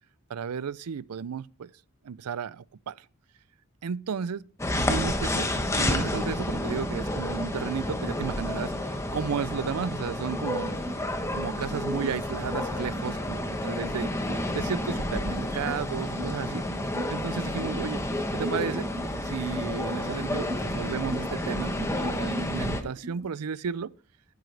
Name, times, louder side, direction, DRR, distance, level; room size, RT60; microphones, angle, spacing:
voice 1, 0.3-1.7 2.0-3.1 3.8-4.4 4.7-10.8 11.3-16.6 17.1-18.0 18.3-18.9 19.2-23.9, right 6 dB, 90° right, 0.5 m, -33 dB
sound 1, 4.6-22.8, left 1 dB, 15° left, 1.1 m, -30 dB
sound 2, 9.9-23.3, right 1 dB, 45° right, 1.2 m, -39 dB
11.5 x 9.8 x 3.3 m
head